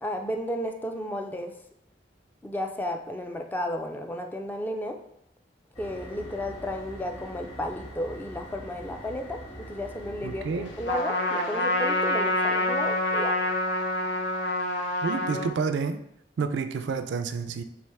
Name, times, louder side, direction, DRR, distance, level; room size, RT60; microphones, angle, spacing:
voice 1, 0.0-1.5 2.4-5.0 5.8-10.4 10.8-13.4, left 1 dB, 10° left, 4 dB, 0.3 m, -33 dB
sound 1, 5.7-11.0, equal, 35° left, 1.5 m, -43 dB
voice 2, 10.2-10.7 15.0-16.0 16.4-17.6, right 5 dB, 80° right, 10 dB, 0.3 m, -29 dB
Trumpet, 10.9-15.5, left 1 dB, 75° left, 0.6 m, -26 dB
3.2 x 3.0 x 4.5 m, 0.73 s
head